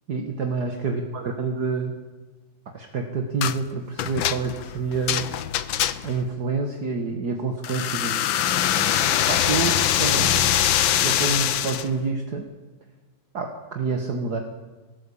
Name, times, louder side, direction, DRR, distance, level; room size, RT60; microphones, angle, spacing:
voice 1, 0.1-1.9 2.7-5.3 6.0-8.2 9.3-10.6 11.0-12.5 13.3-14.4, right 4 dB, 55° right, 3 dB, 2.2 m, -28 dB
sound 1, 3.4-3.6 4.0-6.2 7.6-11.9, left 11 dB, 85° left, 1.7 m, -23 dB
21.5 x 18.0 x 8.6 m, 1.3 s
omnidirectional pair, 2.1 m